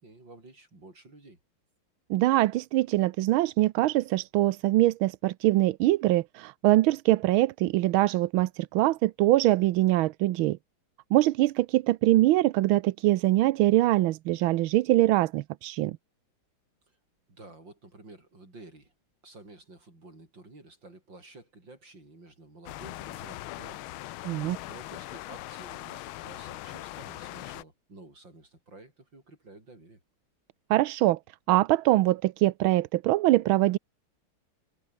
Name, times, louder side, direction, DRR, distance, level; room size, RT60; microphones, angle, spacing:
voice 1, 0.0-1.4 16.9-17.0 17.3-18.9 19.2-23.9 24.7-30.0, right 2 dB, 60° right, 7.9 m, -51 dB
voice 2, 2.1-10.6 11.1-16.0 24.2-24.6 30.7-31.2 31.5-33.8, right 16 dB, 80° right, 1.5 m, -23 dB
sound 1, 22.7-27.6, left 16 dB, 80° left, 1.5 m, -41 dB
omnidirectional pair, 2.3 m